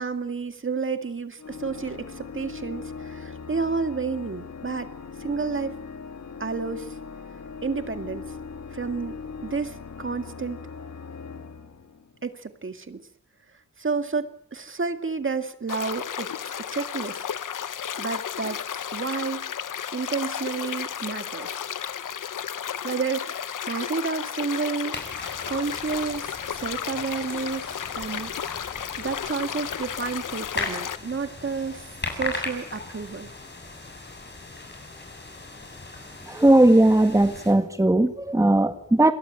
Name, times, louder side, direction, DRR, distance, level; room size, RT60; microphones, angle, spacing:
voice 1, 0.0-4.9 5.2-5.8 6.4-7.0 7.6-8.3 8.7-10.6 12.2-13.1 13.8-17.2 18.0-18.6 18.9-19.5 19.9-21.6 22.8-25.0 25.5-28.6 29.0-33.3, right 5 dB, 40° right, 8 dB, 2.1 m, -31 dB
Organ, 1.4-12.3, left 5 dB, 60° left, 2.9 m, -39 dB
sound 1, 15.7-31.0, left 8 dB, 90° left, 1.1 m, -33 dB
sound 2, 24.9-37.5, left 2 dB, 35° left, 7.9 m, -38 dB
voice 2, 36.3-39.1, right 1 dB, 10° right, 8 dB, 1.7 m, -18 dB
29.0 x 22.5 x 8.9 m, 0.69 s
wide cardioid pair, 100°, 31 cm